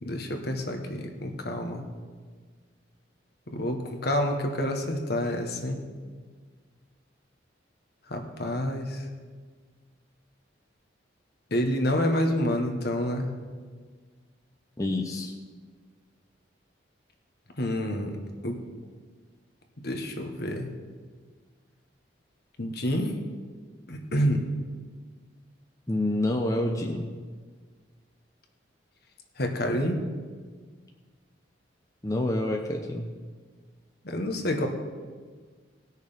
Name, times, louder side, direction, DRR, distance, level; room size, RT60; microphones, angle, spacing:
voice 1, 0.0-1.8 3.5-5.8 8.1-9.0 11.5-13.3 17.6-18.2 18.4-18.6 19.8-20.7 22.6-23.1 23.9-24.4 29.4-30.0 34.0-34.7, equal, 55° left, 4 dB, 1.4 m, -28 dB
voice 2, 14.8-15.3 25.9-27.1 32.0-33.1, left 1 dB, 15° left, 1 dB, 0.7 m, -28 dB
18.5 x 6.5 x 5.2 m, 1.5 s
head